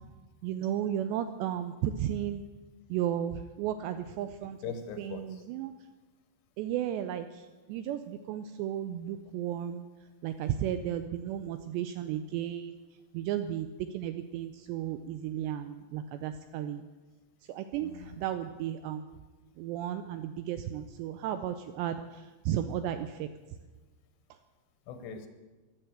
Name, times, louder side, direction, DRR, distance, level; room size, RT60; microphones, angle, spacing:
voice 1, 0.4-2.4 2.9-4.6 5.0-5.7 6.6-9.8 10.2-12.8 13.1-16.8 17.5-19.0 19.6-23.3, right 10 dB, 85° right, 9 dB, 2.5 m, -34 dB
voice 2, 4.6-5.4 17.8-18.2 24.9-25.3, left 6 dB, 75° left, 8 dB, 2.9 m, -41 dB
13.5 x 11.5 x 7.9 m, 1.2 s
omnidirectional pair, 5.5 m